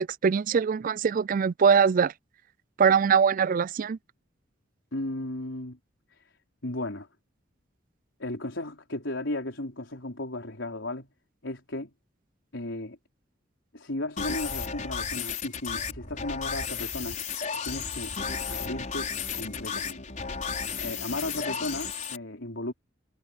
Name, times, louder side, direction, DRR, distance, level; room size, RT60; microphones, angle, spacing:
voice 1, 0.0-2.1 2.8-4.0, right 6 dB, 45° right, 0.4 m, -22 dB
voice 2, 4.9-5.8 6.1-6.2 6.6-7.1 8.2-11.1 11.4-11.9 12.5-13.0 13.7-17.2 17.6-18.1 18.5-20.0 20.8-22.7, left 1 dB, 80° left, 4.5 m, -35 dB
sound 1, 14.2-22.2, left 6 dB, 40° left, 5.2 m, -33 dB
head